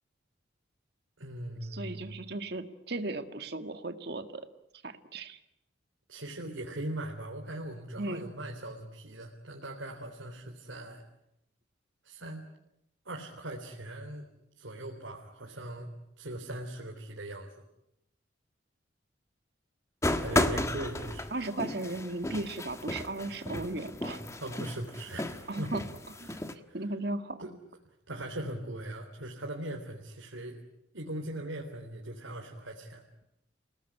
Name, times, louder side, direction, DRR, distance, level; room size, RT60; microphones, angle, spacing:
voice 1, 1.2-2.2 6.1-11.0 12.0-12.5 13.1-14.3 14.6-15.9 16.2-17.5 20.2-21.3 24.4-25.7 26.3-26.4 26.7-26.8 27.4-27.5 28.1-30.6 30.9-33.0, right 1 dB, 85° right, 0 dB, 3.6 m, -40 dB
voice 2, 1.7-4.5 4.8-5.4 8.0-8.3 21.3-24.2 25.5-25.8 26.2-26.4 26.7-27.5, right 2 dB, 55° right, 8 dB, 2.0 m, -36 dB
sound 1, 20.0-26.5, left 1 dB, 15° left, 1.4 m, -33 dB
29.0 x 18.5 x 10.0 m, 0.82 s
head